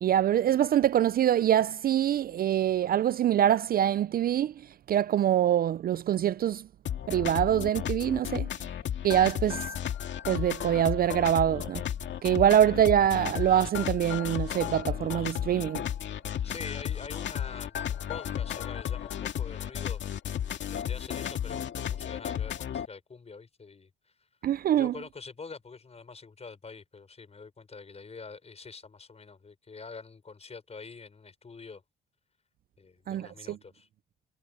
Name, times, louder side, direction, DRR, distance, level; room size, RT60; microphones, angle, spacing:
voice 1, 0.0-6.7 7.1-8.5 9.0-9.7 10.3-11.9 12.2-15.8 24.4-24.9 33.1-33.6, right 10 dB, 50° right, 0.4 m, -25 dB
sound 1, 6.9-22.9, left 9 dB, 65° left, 2.1 m, -33 dB
voice 2, 16.4-20.0 20.7-24.1 24.8-31.8 32.8-33.9, left 4 dB, 30° left, 5.9 m, -45 dB
cardioid pair, 90°, 20 cm